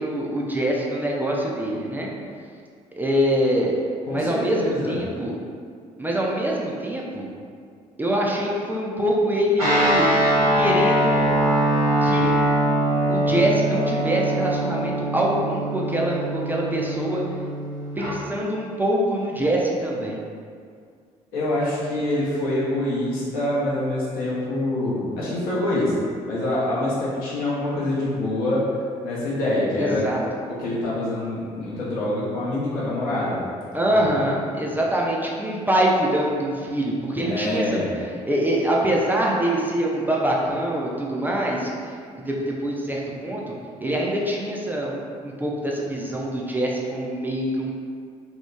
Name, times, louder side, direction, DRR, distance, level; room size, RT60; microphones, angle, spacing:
voice 1, 0.0-2.1 3.0-3.7 4.1-5.4 6.0-7.3 8.0-10.1 10.6-11.2 12.0-12.3 13.1-17.2 18.0-20.2 29.8-30.2 33.7-47.7, right 1 dB, 10° right, -3 dB, 0.4 m, -24 dB
voice 2, 4.1-5.0 21.3-28.6 29.0-30.0 30.6-33.4 33.7-34.1 37.2-37.9, left 1 dB, 60° left, -8 dB, 0.7 m, -25 dB
Guitar, 9.6-18.1, right 1 dB, 90° right, 1.1 m, -22 dB
2.8 x 2.0 x 2.3 m, 2.2 s
figure-of-eight pair, 45°, 18 cm